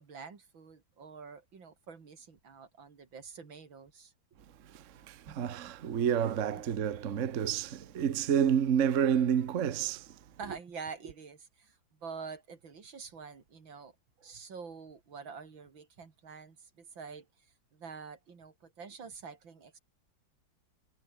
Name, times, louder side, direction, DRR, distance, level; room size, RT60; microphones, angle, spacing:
voice 1, 0.0-4.1 5.3-5.4 6.5-6.6 10.4-13.9 14.2-17.3 17.7-19.8, right 5 dB, 90° right, 3.6 m, -47 dB
voice 2, 4.6-10.2, right 8 dB, 45° right, 1.2 m, -29 dB
omnidirectional pair, 2.0 m